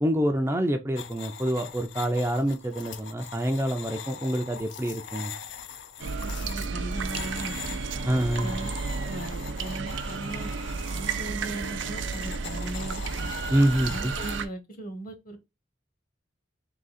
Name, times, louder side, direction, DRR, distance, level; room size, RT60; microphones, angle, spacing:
voice 1, 0.0-5.3 8.1-8.5 13.5-14.1, right 1 dB, 15° right, 0.4 m, -26 dB
sound 1, 1.0-14.4, left 7 dB, 75° left, 0.6 m, -42 dB
sound 2, 6.0-14.5, right 4 dB, 80° right, 0.5 m, -32 dB
voice 2, 6.2-7.8 8.4-8.7 9.0-10.5 10.9-13.3 13.9-15.4, right 1 dB, 50° left, 1.2 m, -38 dB
3.7 x 2.8 x 4.1 m
head